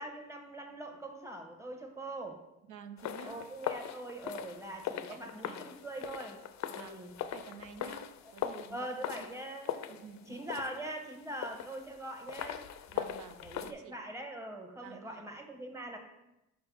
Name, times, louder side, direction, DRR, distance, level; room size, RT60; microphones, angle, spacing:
voice 1, 0.0-2.4 3.3-6.4 6.7-7.1 8.7-10.0 10.3-12.6 13.4-16.0, right 1 dB, 10° right, 3 dB, 1.1 m, -42 dB
voice 2, 2.7-3.5 5.0-5.7 6.7-7.0 7.3-9.3 9.9-10.6 12.9-14.0 14.8-15.2, right 7 dB, 80° right, 10 dB, 0.6 m, -51 dB
sound 1, 3.0-13.7, left 10 dB, 65° left, 0.5 m, -41 dB
5.4 x 4.4 x 5.3 m, 0.92 s
cardioid pair, 90°, 30 cm